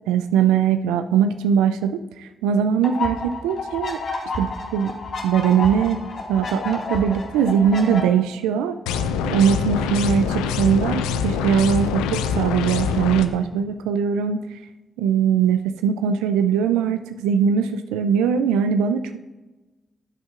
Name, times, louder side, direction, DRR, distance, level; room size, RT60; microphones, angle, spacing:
voice 1, 0.1-4.0 4.4-4.9 5.2-6.0 6.3-8.8 9.2-14.6 15.0-19.2, right 7 dB, 85° right, 9 dB, 0.3 m, -21 dB
sound 1, 2.8-8.0, left 3 dB, 65° left, 1.9 m, -30 dB
sound 2, 8.9-13.3, left 6 dB, 85° left, 0.4 m, -24 dB
12.0 x 7.8 x 2.4 m, 1.1 s
hypercardioid pair, 40°, 0 cm